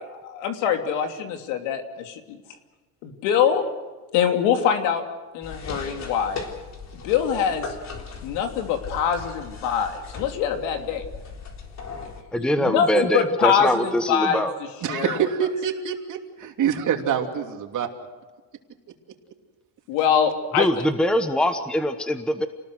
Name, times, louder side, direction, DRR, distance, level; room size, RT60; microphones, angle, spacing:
voice 1, 0.0-2.4 3.0-3.7 4.1-5.0 5.3-6.4 6.9-7.7 8.2-11.0 12.0-12.1 12.4-14.4 14.9-15.3 19.9-20.7, left 8 dB, 85° left, 5 dB, 3.0 m, -24 dB
sound 1, 5.4-12.2, left 4 dB, 40° left, 3.9 m, -38 dB
voice 2, 12.3-14.5 20.6-22.5, equal, ahead, 8 dB, 1.1 m, -23 dB
voice 3, 14.8-17.9, right 8 dB, 45° right, 3 dB, 3.0 m, -26 dB
28.5 x 19.5 x 6.5 m, 1.3 s
cardioid pair, 135°, 42 cm